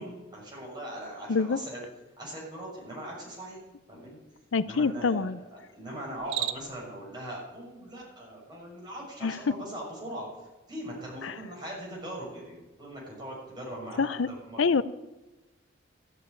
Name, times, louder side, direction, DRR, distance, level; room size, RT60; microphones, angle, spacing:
voice 1, 0.0-1.8 2.2-3.6 3.9-4.2 4.6-10.3 10.7-14.6, right 1 dB, 20° right, -4 dB, 6.5 m, -40 dB
voice 2, 4.5-5.4 9.2-9.5 11.2-11.4 14.0-14.3 14.6-14.8, left 4 dB, 80° left, 15 dB, 0.6 m, -26 dB
Cricket, 6.1-6.9, right 12 dB, 90° right, 0.7 m, -34 dB
13.5 x 7.5 x 9.4 m, 1.1 s
head